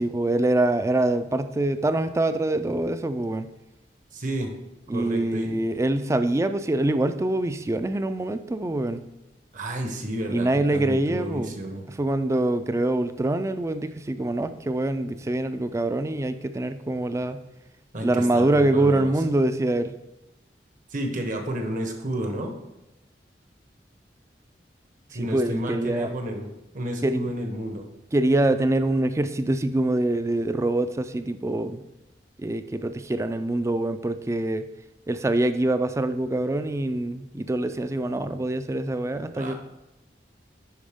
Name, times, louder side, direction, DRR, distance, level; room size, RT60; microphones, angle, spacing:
voice 1, 0.0-3.5 4.9-9.0 10.3-11.6 12.0-17.4 18.0-19.9 25.1-26.1 27.0-27.3 28.1-31.8 32.4-34.6 35.1-39.5, right 1 dB, 15° right, 10 dB, 0.4 m, -24 dB
voice 2, 4.1-4.5 4.9-5.6 9.5-11.8 17.9-19.1 20.9-22.6 25.1-26.5 26.7-27.9 39.3-39.5, right 1 dB, 50° right, 4 dB, 1.0 m, -31 dB
10.5 x 4.2 x 3.6 m, 0.95 s
head